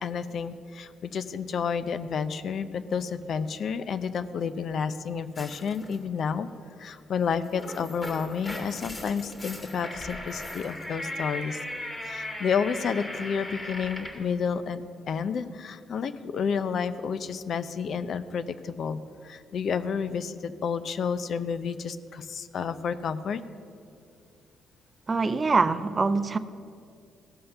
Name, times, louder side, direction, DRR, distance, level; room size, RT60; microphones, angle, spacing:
voice 1, 0.0-6.5 6.8-11.6 12.0-23.4, left 6 dB, 60° left, 12 dB, 0.5 m, -30 dB
sound 1, 5.3-6.0 7.3-14.3, left 1 dB, 30° left, 2.1 m, -38 dB
voice 2, 25.1-26.4, right 4 dB, 30° right, 13 dB, 0.5 m, -24 dB
16.0 x 5.6 x 6.7 m, 2.3 s
cardioid pair, 90°, 0 cm